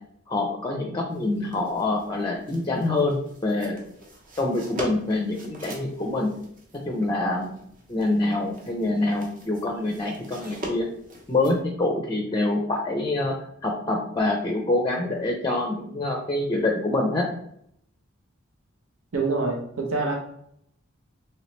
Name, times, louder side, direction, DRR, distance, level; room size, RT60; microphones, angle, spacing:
voice 1, 0.3-3.8 4.4-6.3 6.7-7.5 7.9-10.9 11.3-13.3 13.6-17.2, left 2 dB, 20° left, 1 dB, 0.5 m, -25 dB
sound 1, 1.1-11.6, equal, 40° right, 0.8 m, -42 dB
voice 2, 19.1-20.1, right 3 dB, 75° right, 1 dB, 0.7 m, -25 dB
3.1 x 3.0 x 3.0 m, 0.71 s
head